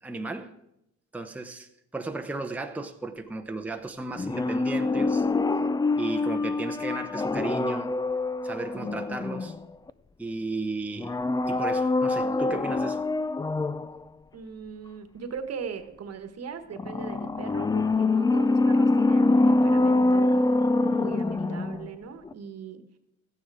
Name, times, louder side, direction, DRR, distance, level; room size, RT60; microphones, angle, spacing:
voice 1, 0.0-0.5 1.1-5.3 6.0-7.9 8.4-9.5 10.2-11.1 11.5-13.0, right 2 dB, 5° right, 0.8 m, -34 dB
sound 1, 4.2-9.9 11.0-14.0 16.8-22.0 22.3-22.4, left 2 dB, 15° left, 0.4 m, -25 dB
voice 2, 14.3-22.8, right 6 dB, 55° right, 1.3 m, -39 dB
13.5 x 9.1 x 4.8 m
cardioid pair, 90°, 30 cm